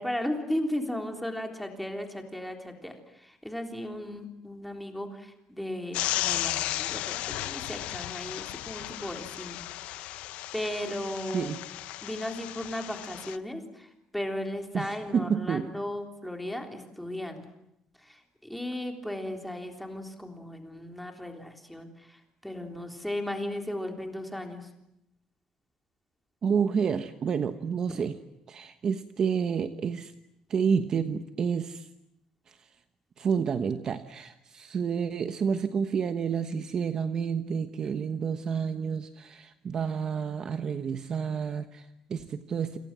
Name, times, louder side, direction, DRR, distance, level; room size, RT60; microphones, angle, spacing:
voice 1, 0.0-9.6 9.9-10.2 10.5-11.5 12.0-17.5 18.0-24.7 27.9-28.0, left 1 dB, ahead, 4 dB, 3.6 m, -36 dB
sound 1, 5.9-13.4, left 15 dB, 80° left, 1.0 m, -34 dB
voice 2, 14.7-15.7 26.4-28.2 28.5-30.1 30.5-31.9 32.5-32.7 33.2-42.8, right 6 dB, 35° right, 9 dB, 1.2 m, -29 dB
28.5 x 27.5 x 7.5 m, 0.84 s
cardioid pair, 175°, 2 cm